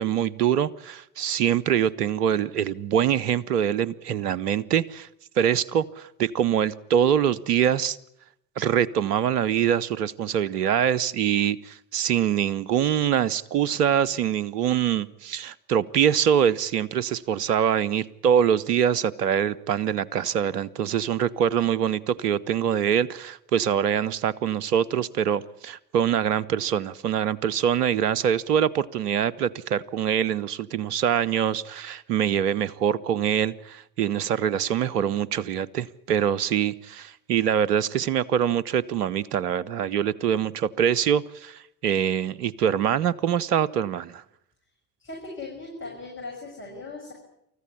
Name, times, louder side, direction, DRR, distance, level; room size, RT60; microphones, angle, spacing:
voice 1, 0.0-5.1 5.4-8.0 8.6-44.2, right 9 dB, 75° right, 1.0 m, -24 dB
voice 2, 45.0-47.1, left 3 dB, 25° left, 7.1 m, -38 dB
28.5 x 15.0 x 9.8 m
figure-of-eight pair, 55°, 47 cm